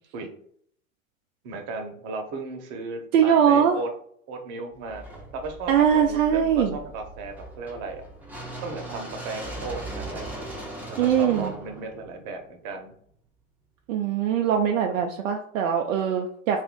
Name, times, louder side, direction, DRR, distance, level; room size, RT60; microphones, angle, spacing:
voice 1, 1.4-3.9 4.3-5.0 5.3-8.0 8.6-10.3 11.0-12.9, right 3 dB, 45° right, 4 dB, 0.9 m, -35 dB
voice 2, 3.1-3.8 5.7-6.8 11.0-11.5 13.9-16.6, right 8 dB, 65° right, 3 dB, 0.5 m, -21 dB
sound 1, 4.9-12.9, right 2 dB, 5° right, 0.7 m, -39 dB
2.5 x 2.4 x 3.6 m, 0.64 s
hypercardioid pair, 95°, 42 cm